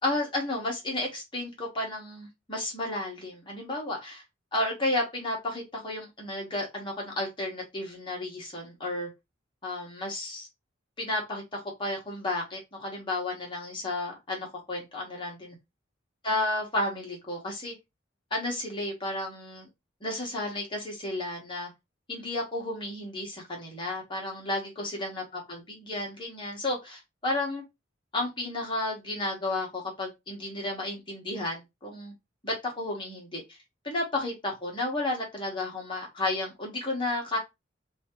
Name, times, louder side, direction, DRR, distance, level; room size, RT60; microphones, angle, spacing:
voice 1, 0.0-4.2 4.5-9.1 9.6-10.5 11.0-15.5 16.2-17.7 18.3-19.7 20.0-21.7 22.1-27.6 28.1-32.1 32.4-33.6 33.8-37.4, left 2 dB, 25° left, -1 dB, 1.4 m, -32 dB
3.5 x 3.1 x 3.0 m, 0.21 s
head